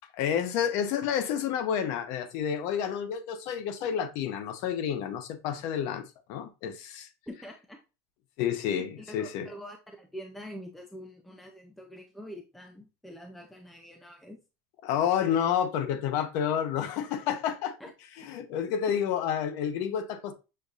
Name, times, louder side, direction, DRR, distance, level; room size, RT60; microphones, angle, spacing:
voice 1, 0.2-6.0 6.3-7.1 8.4-9.5 14.8-17.8 18.2-20.3, left 8 dB, 50° left, 0.7 m, -29 dB
voice 2, 7.3-7.8 8.6-14.4 17.8-17.9 18.2-18.3, equal, ahead, 0.4 m, -45 dB
6.5 x 2.7 x 2.4 m
cardioid pair, 170°, 7 cm